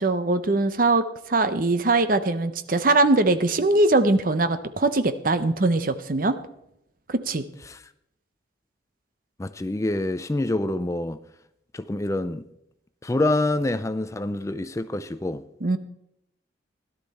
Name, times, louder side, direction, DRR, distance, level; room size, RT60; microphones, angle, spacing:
voice 1, 0.0-6.4 7.1-7.4 15.6-15.8, right 2 dB, 45° right, 0.8 m, -21 dB
voice 2, 9.4-11.2 11.7-12.4 13.0-15.4, left 2 dB, 15° left, 0.4 m, -26 dB
17.0 x 11.5 x 4.2 m
head